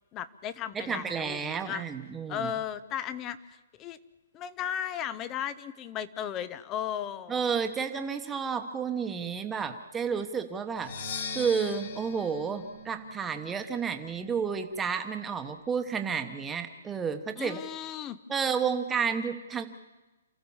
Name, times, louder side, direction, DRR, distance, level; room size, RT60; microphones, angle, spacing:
voice 1, 0.1-1.8 2.3-4.0 4.3-7.4 17.4-18.2, left 9 dB, 15° left, 15 dB, 0.6 m, -35 dB
voice 2, 0.7-2.5 7.3-17.6 18.3-19.7, right 6 dB, 10° right, 6 dB, 1.1 m, -31 dB
Percussion, 10.8-14.5, left 4 dB, 50° left, 2.4 m, -41 dB
28.5 x 14.5 x 7.2 m, 1.1 s
hypercardioid pair, 170°, 0 cm